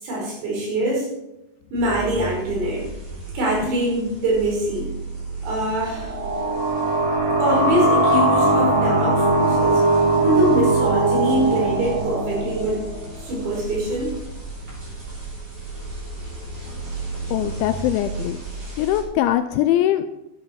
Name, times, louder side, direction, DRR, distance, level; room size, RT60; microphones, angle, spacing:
voice 1, 0.0-1.1 1.7-2.9 3.4-4.9 5.4-6.2 7.4-9.8 10.2-12.8 13.3-14.2, right 1 dB, 80° right, -3 dB, 7.5 m, -23 dB
sound 1, 1.7-19.0, right 2 dB, 30° right, 4.3 m, -35 dB
sound 2, 5.9-13.4, right 2 dB, 50° right, 4.6 m, -20 dB
voice 2, 17.3-18.4 18.8-20.1, left 12 dB, 85° left, 9 dB, 2.7 m, -21 dB
13.5 x 10.5 x 4.6 m, 0.89 s
omnidirectional pair, 5.7 m